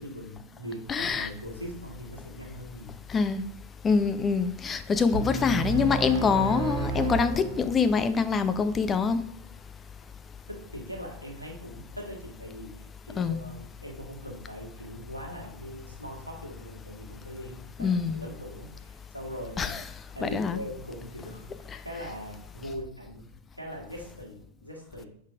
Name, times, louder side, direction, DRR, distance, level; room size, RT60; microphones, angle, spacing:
voice 1, 0.0-3.0 10.5-19.8 20.1-23.3 23.5-25.1, equal, 85° right, 1.6 m, -41 dB
voice 2, 0.9-1.3 3.1-3.4 3.8-9.2 13.2-13.4 17.8-18.2 19.6-19.8 20.2-20.6, left 5 dB, 20° left, 0.4 m, -25 dB
sound 1, 5.1-8.1, right 3 dB, 55° right, 1.5 m, -32 dB
5.2 x 4.0 x 4.9 m
figure-of-eight pair, 90°, 0 cm